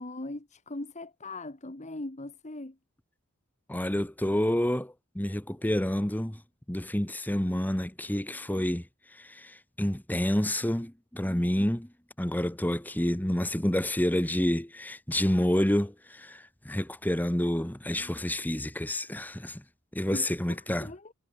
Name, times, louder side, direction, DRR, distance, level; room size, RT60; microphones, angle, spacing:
voice 1, 0.0-2.8 20.1-21.1, left 2 dB, 30° left, 1.5 m, -40 dB
voice 2, 3.7-6.4 6.7-8.8 9.1-11.9 12.2-19.6 19.9-20.9, left 1 dB, 10° left, 1.1 m, -29 dB
head